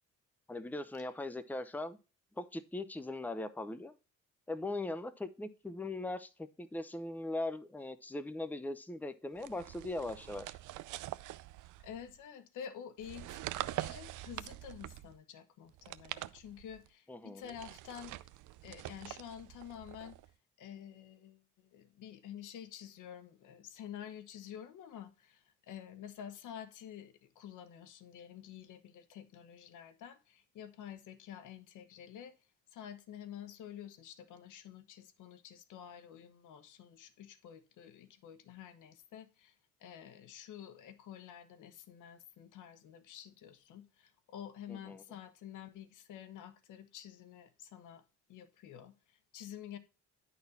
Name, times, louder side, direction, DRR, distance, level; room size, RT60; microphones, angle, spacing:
voice 1, 0.5-2.0 2.4-4.0 4.5-10.6 17.1-17.5 44.7-45.0, left 2 dB, 5° left, 0.7 m, -40 dB
sound 1, 9.4-12.1 13.0-15.2 15.7-16.9 17.4-20.3, right 16 dB, 80° right, 0.5 m, -44 dB
voice 2, 11.8-18.2 18.6-20.2 20.6-32.3 32.7-39.5 39.8-48.0 48.3-49.8, left 9 dB, 85° left, 1.1 m, -49 dB
10.5 x 4.2 x 4.1 m
cardioid pair, 90°, 30 cm